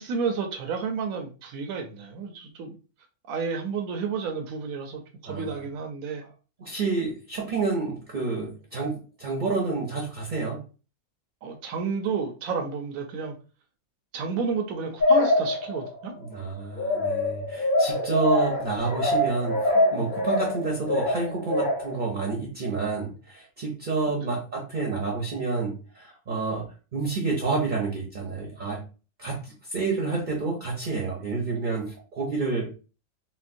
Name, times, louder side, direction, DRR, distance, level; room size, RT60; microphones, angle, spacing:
voice 1, 0.0-2.8 3.3-6.3 11.4-13.4 14.1-16.1 24.1-24.3, right 5 dB, 75° right, 3 dB, 1.0 m, -31 dB
voice 2, 5.3-5.6 6.6-10.6 16.2-28.8 29.2-32.7, right 4 dB, 45° right, 0 dB, 0.6 m, -29 dB
sound 1, 15.0-16.0 16.8-22.0, left 2 dB, 35° left, 1.5 m, -24 dB
4.3 x 2.0 x 2.5 m, 0.34 s
omnidirectional pair, 1.5 m